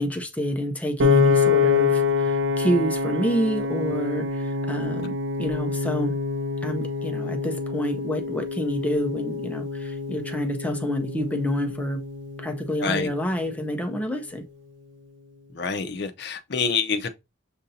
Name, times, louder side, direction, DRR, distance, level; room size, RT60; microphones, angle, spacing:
voice 1, 0.0-6.2 6.6-12.0 12.4-14.4, equal, 10° left, 0.5 m, -28 dB
Piano, 1.0-13.2, left 5 dB, 70° right, 0.5 m, -26 dB
voice 2, 15.6-17.1, left 5 dB, 60° left, 0.6 m, -26 dB
6.6 x 2.6 x 2.7 m
head